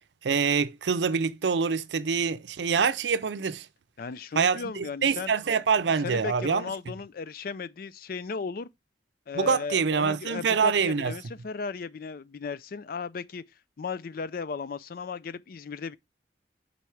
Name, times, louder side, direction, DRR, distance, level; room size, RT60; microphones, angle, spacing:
voice 1, 0.2-3.7 4.4-6.7 9.3-11.1, right 5 dB, 85° right, 0.5 m, -25 dB
voice 2, 4.0-5.4 6.0-8.7 9.3-13.4 13.8-16.0, left 5 dB, 55° left, 0.4 m, -36 dB
5.7 x 4.0 x 4.7 m
head